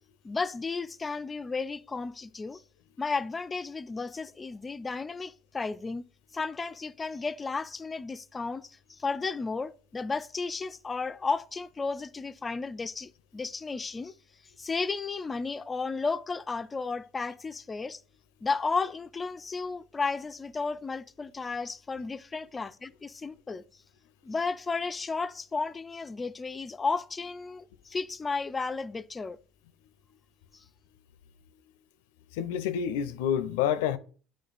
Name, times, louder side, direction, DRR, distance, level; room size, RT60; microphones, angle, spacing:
voice 1, 0.2-2.6 3.0-6.0 6.3-14.1 14.6-18.0 18.4-23.6 24.2-29.4 30.5-30.6, left 4 dB, 25° left, 0.4 m, -33 dB
voice 2, 32.3-34.0, left 9 dB, 85° left, 0.5 m, -28 dB
8.4 x 3.2 x 3.9 m
supercardioid pair, 90°, 0 cm